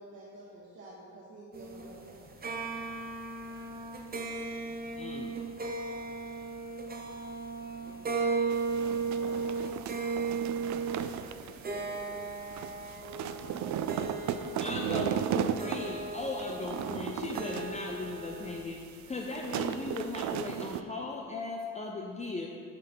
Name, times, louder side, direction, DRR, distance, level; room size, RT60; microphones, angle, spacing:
voice 1, 0.0-2.3, right 2 dB, 55° right, -9 dB, 1.9 m, -49 dB
sound 1, 1.5-18.6, right 4 dB, 30° right, 0.9 m, -36 dB
voice 2, 5.0-5.4 14.3-22.5, left 3 dB, 25° left, 0 dB, 0.6 m, -38 dB
voice 3, 7.8-8.8 9.1-11.2 11.4-12.3, left 2 dB, 70° left, -5 dB, 1.4 m, -57 dB
sound 2, 8.5-20.8, right 9 dB, 70° right, 0.4 m, -36 dB
7.7 x 4.6 x 5.5 m, 2.3 s
cardioid pair, 90°, 30 cm